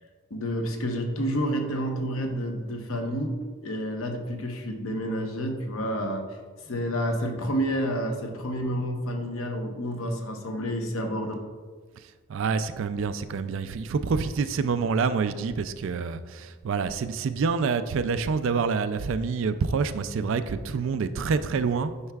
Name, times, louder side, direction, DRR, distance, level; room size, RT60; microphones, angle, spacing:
voice 1, 0.3-6.4 6.6-11.3, equal, 65° left, 3 dB, 0.9 m, -29 dB
voice 2, 12.3-21.9, right 5 dB, 60° right, 11 dB, 0.3 m, -27 dB
9.5 x 5.6 x 2.3 m, 1.5 s
head